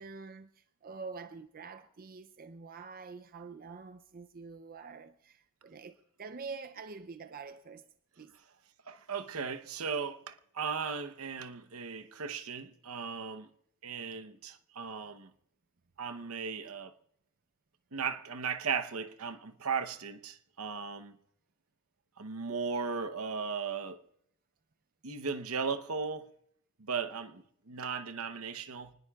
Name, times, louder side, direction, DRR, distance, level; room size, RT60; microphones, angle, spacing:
voice 1, 0.0-7.9 8.2-8.4, right 4 dB, 40° right, 0.5 m, -46 dB
voice 2, 8.9-13.5 13.8-15.3 16.0-16.9 17.9-21.2 22.2-24.0 25.0-26.3 26.8-28.9, right 5 dB, 75° right, 0.9 m, -37 dB
25.0 x 20.0 x 2.4 m
head